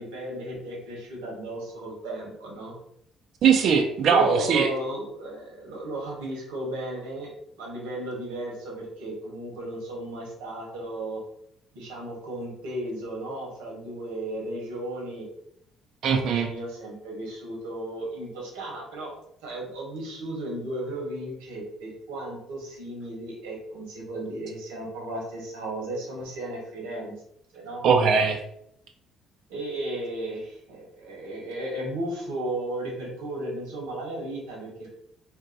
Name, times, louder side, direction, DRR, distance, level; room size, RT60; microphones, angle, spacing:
voice 1, 0.0-2.7 4.1-11.2 11.7-15.3 16.1-19.1 19.4-27.1 27.5-27.8 29.5-34.9, right 1 dB, 85° right, -2 dB, 1.1 m, -34 dB
voice 2, 3.4-4.7 16.0-16.5 27.8-28.4, right 6 dB, 65° right, 3 dB, 0.4 m, -20 dB
2.6 x 2.2 x 3.8 m, 0.74 s
supercardioid pair, 65°, 0 cm